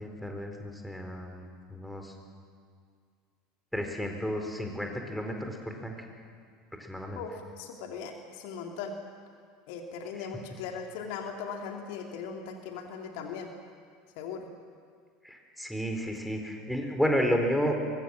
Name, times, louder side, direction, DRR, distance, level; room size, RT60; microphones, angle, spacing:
voice 1, 0.0-2.1 3.7-5.9 6.8-7.2 10.2-10.3 15.2-17.8, equal, ahead, 3 dB, 4.2 m, -32 dB
voice 2, 7.1-9.0 9.7-13.5 14.2-14.5, left 6 dB, 55° left, 3 dB, 2.5 m, -39 dB
23.5 x 22.5 x 7.3 m, 2.1 s
figure-of-eight pair, 75°, 0 cm